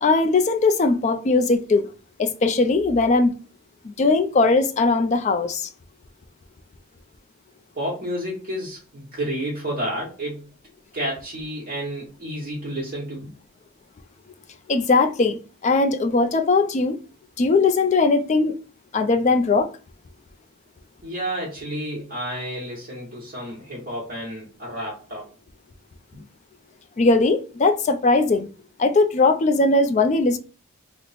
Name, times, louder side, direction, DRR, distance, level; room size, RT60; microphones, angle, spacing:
voice 1, 0.0-1.9 2.2-3.3 3.8-5.7 14.7-15.4 15.6-17.0 17.4-18.6 18.9-19.7 27.0-28.5 28.8-30.4, left 3 dB, 30° left, 0.3 m, -19 dB
voice 2, 7.7-10.5 10.9-13.3 21.0-25.3 26.1-26.2, equal, 40° right, 1.0 m, -30 dB
3.0 x 2.0 x 4.0 m
head